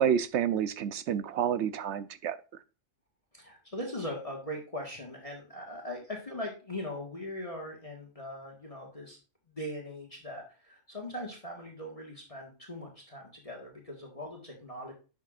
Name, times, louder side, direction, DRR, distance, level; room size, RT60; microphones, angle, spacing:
voice 1, 0.0-2.4, right 9 dB, 65° right, 0.8 m, -29 dB
voice 2, 3.3-9.2 9.5-14.9, left 1 dB, 25° left, 1.6 m, -40 dB
10.5 x 6.4 x 2.5 m
omnidirectional pair, 1.3 m